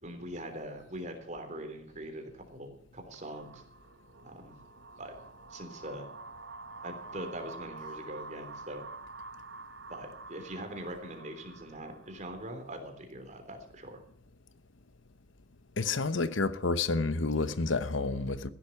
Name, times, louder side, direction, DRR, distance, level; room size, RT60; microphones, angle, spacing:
voice 1, 0.0-3.6 4.2-4.6 5.0-5.1 5.5-6.1 6.8-8.8 9.9-14.0, right 1 dB, 40° right, 3.5 m, -42 dB
sound 1, 3.1-12.6, right 3 dB, 65° right, 1.0 m, -48 dB
voice 2, 15.8-18.5, left 3 dB, 80° left, 1.0 m, -29 dB
15.5 x 11.5 x 5.8 m
head